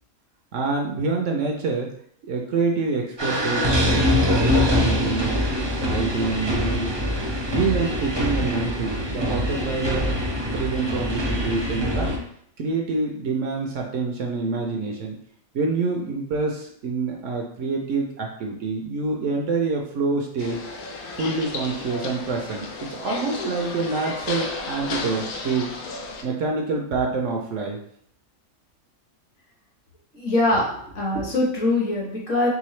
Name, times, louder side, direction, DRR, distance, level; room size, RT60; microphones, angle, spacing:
voice 1, 0.5-1.9 2.2-5.3 5.8-6.9 7.5-10.2 10.5-12.1 12.6-15.2 15.5-20.6 21.1-25.7 26.2-27.8, right 4 dB, 65° right, 1 dB, 0.9 m, -26 dB
sound 1, 3.2-12.2, left 1 dB, 30° right, 0.5 m, -23 dB
sound 2, 20.4-26.2, left 3 dB, 90° left, 1.2 m, -33 dB
voice 2, 30.1-30.7 30.9-32.5, left 2 dB, 60° left, -3 dB, 1.4 m, -22 dB
3.7 x 3.4 x 3.1 m, 0.68 s
omnidirectional pair, 1.5 m